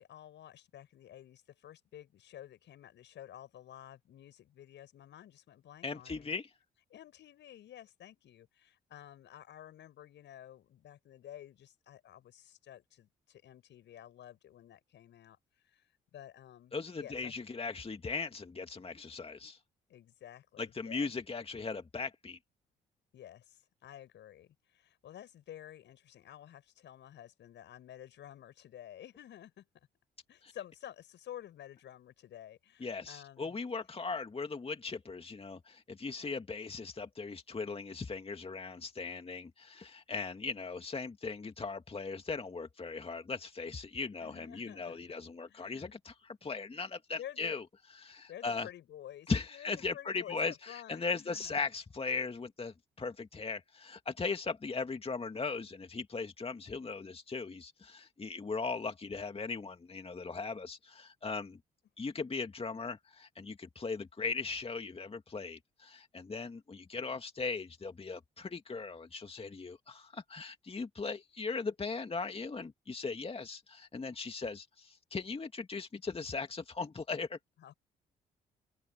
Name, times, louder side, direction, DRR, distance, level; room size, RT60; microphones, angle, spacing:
voice 1, 0.0-6.3 6.9-15.4 15.6-17.4 19.9-21.1 23.1-29.7 30.3-33.6 44.2-45.1 45.5-45.9 47.1-47.6 48.3-51.5 77.6-77.7, left 11 dB, 60° left, 6.8 m, -51 dB
voice 2, 5.8-6.5 16.7-19.6 20.6-22.4 30.4-30.5 32.8-47.6 47.9-48.7 49.3-61.6 62.0-77.4, left 4 dB, 30° left, 2.3 m, -38 dB
open air
figure-of-eight pair, 45°, 21 cm